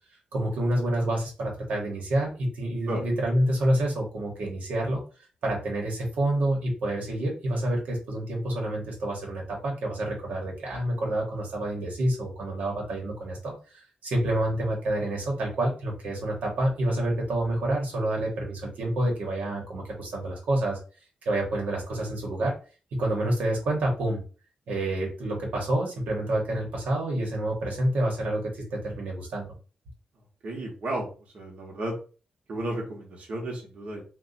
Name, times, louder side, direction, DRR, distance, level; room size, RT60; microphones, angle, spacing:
voice 1, 0.3-5.0 5.4-20.8 21.2-22.5 22.9-24.2 24.7-29.5, right 1 dB, 85° right, -1 dB, 1.1 m, -28 dB
voice 2, 30.4-31.9 32.5-34.0, right 1 dB, 60° right, -1 dB, 1.0 m, -33 dB
2.7 x 2.2 x 3.9 m, 0.35 s
cardioid pair, 95°, 2 cm